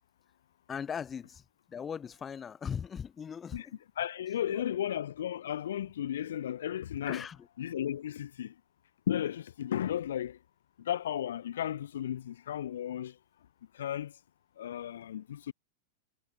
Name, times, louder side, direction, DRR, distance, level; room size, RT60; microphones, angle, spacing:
voice 1, 0.7-1.4 1.7-3.8 4.5-4.6 7.1-7.5, left 7 dB, 20° left, 4.4 m, -39 dB
voice 2, 4.0-7.3 7.6-8.5 9.1-10.4 10.8-13.1 13.7-14.1 14.6-15.5, left 10 dB, 60° left, 2.4 m, -34 dB
figure-of-eight pair, 90°, 0 cm